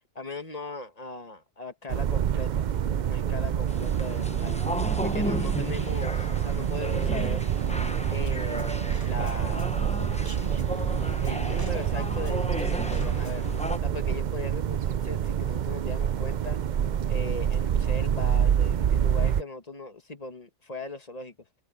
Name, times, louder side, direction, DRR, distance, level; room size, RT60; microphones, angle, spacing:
voice 1, 0.1-7.5 8.1-9.7 11.2-13.4 13.8-16.6 17.1-21.5, left 3 dB, 35° left, 1.6 m, -39 dB
sound 1, 1.9-19.4, right 9 dB, 55° right, 0.5 m, -27 dB
hospital hallway waiting room, 3.7-13.8, left 1 dB, 5° left, 0.9 m, -35 dB
Drum kit, 8.3-13.6, equal, 15° right, 4.4 m, -41 dB
omnidirectional pair, 1.2 m